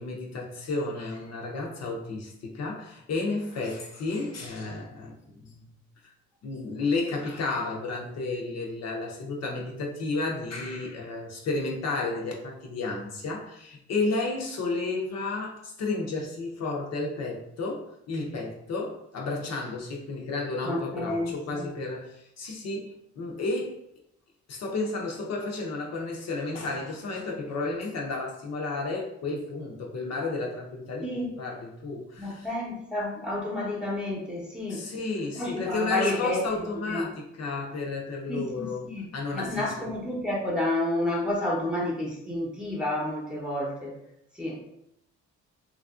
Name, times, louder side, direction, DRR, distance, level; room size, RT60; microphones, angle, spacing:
voice 1, 0.0-5.7 6.4-23.8 24.5-31.0 31.4-32.5 34.7-39.9, left 3 dB, 60° left, -1 dB, 0.7 m, -32 dB
voice 2, 20.6-21.6 31.0-31.3 32.2-34.9 35.3-37.1 38.3-39.1 39.3-44.0 44.3-44.6, left 1 dB, 5° right, -4 dB, 0.8 m, -30 dB
3.2 x 2.5 x 2.4 m, 0.77 s
cardioid pair, 90°, 30 cm